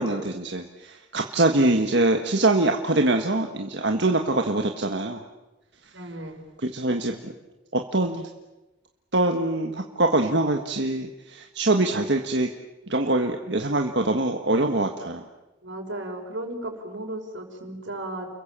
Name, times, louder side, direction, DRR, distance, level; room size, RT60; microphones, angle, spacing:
voice 1, 0.0-5.2 6.6-7.3 7.7-8.3 9.1-12.5 12.9-15.3, right 2 dB, 65° right, 3 dB, 1.5 m, -24 dB
voice 2, 5.9-6.5 15.6-18.3, right 1 dB, 90° right, 3 dB, 5.5 m, -35 dB
30.0 x 22.5 x 7.5 m, 1.1 s
head